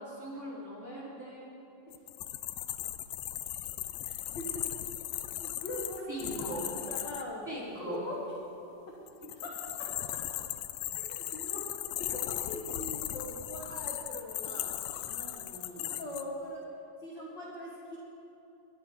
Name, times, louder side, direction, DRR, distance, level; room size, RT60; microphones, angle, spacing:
voice 1, 0.0-1.5 6.1-6.7 7.5-8.0 9.2-9.3 14.4-16.0, right 1 dB, 5° right, -8 dB, 3.8 m, -42 dB
sound 1, 1.9-7.2 9.1-16.2, left 13 dB, 80° left, 1.6 m, -37 dB
voice 2, 5.1-7.5 7.9-8.3 9.4-9.9 11.0-11.7 12.0-14.5 15.7-16.6 17.0-18.0, left 1 dB, 45° left, -4 dB, 1.8 m, -41 dB
21.5 x 11.0 x 4.6 m, 2.9 s
omnidirectional pair, 3.7 m